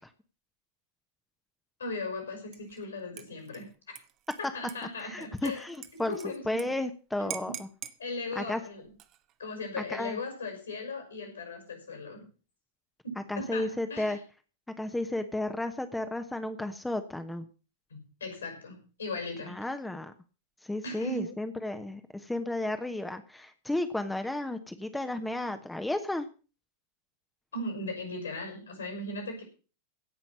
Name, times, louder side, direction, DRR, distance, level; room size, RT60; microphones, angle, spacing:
voice 1, 1.8-4.0 4.4-5.6 5.9-6.6 7.2-7.6 8.0-8.9 9.4-12.3 13.0-14.2 17.9-19.6 20.8-21.3 27.5-29.4, left 2 dB, 70° left, 5 dB, 6.0 m, -38 dB
Dishes pots and pans / Liquid, 2.5-2.8 3.2-6.7 6.9-7.0 7.3-8.0 8.8-9.3, right 13 dB, 35° right, 1.1 m, -44 dB
voice 2, 5.0-6.1 6.5-7.7 8.3-8.6 9.9-10.2 13.3-14.2 14.8-17.5 19.5-20.1 20.6-26.3, left 1 dB, 5° left, 8 dB, 1.1 m, -33 dB
17.0 x 5.8 x 7.2 m, 0.35 s
figure-of-eight pair, 90°, 0 cm